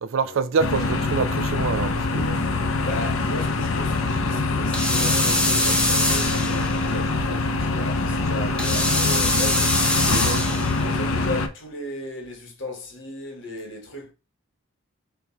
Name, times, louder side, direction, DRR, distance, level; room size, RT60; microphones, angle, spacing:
voice 1, 0.0-2.5 10.1-10.4, right 5 dB, 70° right, 0.4 m, -26 dB
sound 1, 0.6-11.5, left 3 dB, 80° left, 0.5 m, -24 dB
voice 2, 2.8-9.8 10.8-14.1, left 1 dB, 60° left, 1.2 m, -35 dB
Steam Iron, 4.7-6.9 8.6-10.9, left 1 dB, 5° left, 0.5 m, -23 dB
4.4 x 2.3 x 4.0 m
head